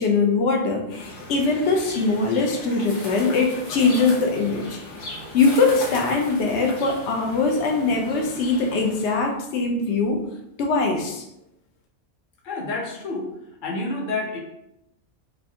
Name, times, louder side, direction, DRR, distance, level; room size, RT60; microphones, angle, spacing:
voice 1, 0.0-4.8 5.3-10.2 10.6-11.2, left 4 dB, 75° left, 2 dB, 0.9 m, -22 dB
sound 1, 0.9-9.2, left 2 dB, 90° left, 1.3 m, -37 dB
voice 2, 12.4-13.3 13.6-14.4, left 2 dB, 50° left, -1 dB, 0.8 m, -28 dB
4.0 x 2.5 x 2.8 m, 0.83 s
omnidirectional pair, 1.2 m